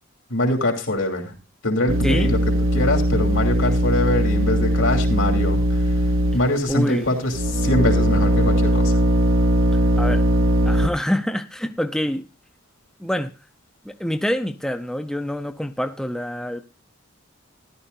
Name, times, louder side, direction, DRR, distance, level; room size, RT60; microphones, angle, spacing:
voice 1, 0.3-1.3 1.6-2.4 2.7-6.1 6.3-9.0, left 1 dB, 80° left, 2 dB, 2.9 m, -23 dB
sound 1, 1.9-6.7 7.3-10.9, equal, 75° right, 1.0 m, -19 dB
voice 2, 6.7-7.1 10.0-10.2 10.6-12.2 13.0-13.3 13.8-16.6, equal, 5° left, 6 dB, 0.5 m, -25 dB
14.0 x 11.5 x 2.6 m, 0.30 s
head